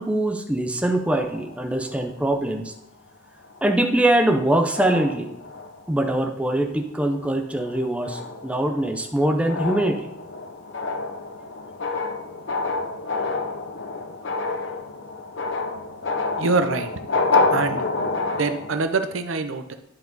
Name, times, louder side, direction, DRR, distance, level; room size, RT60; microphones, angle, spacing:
voice 1, 0.0-2.7 3.6-5.3 5.9-10.1, right 1 dB, 5° right, 3 dB, 0.6 m, -23 dB
sound 1, 0.9-2.8 3.4-3.7 4.0-4.4 4.7-6.0 6.5-6.8 7.2-18.8, left 3 dB, 60° left, 0.7 m, -28 dB
voice 2, 16.4-16.9 17.5-17.8 18.4-19.7, right 3 dB, 85° right, 8 dB, 0.7 m, -24 dB
11.0 x 4.5 x 4.0 m, 0.77 s
head